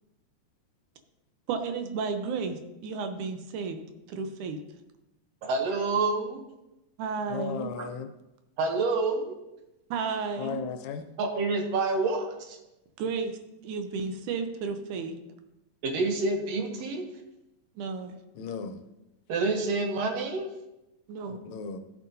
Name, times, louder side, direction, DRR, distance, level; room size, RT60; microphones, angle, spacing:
voice 1, 1.5-3.8 4.1-4.6 7.0-7.7 9.9-10.6 13.0-15.2 17.8-18.2 21.1-21.4, right 5 dB, 90° right, 2.3 m, -33 dB
voice 2, 5.4-6.4 7.8-7.9 8.6-9.4 11.2-12.6 15.8-17.1 19.3-20.5, right 3 dB, 65° right, 1.8 m, -28 dB
voice 3, 7.3-8.1 10.4-11.0 18.4-18.8 21.4-21.8, left 6 dB, 75° left, 1.8 m, -35 dB
13.5 x 7.5 x 2.7 m
omnidirectional pair, 3.4 m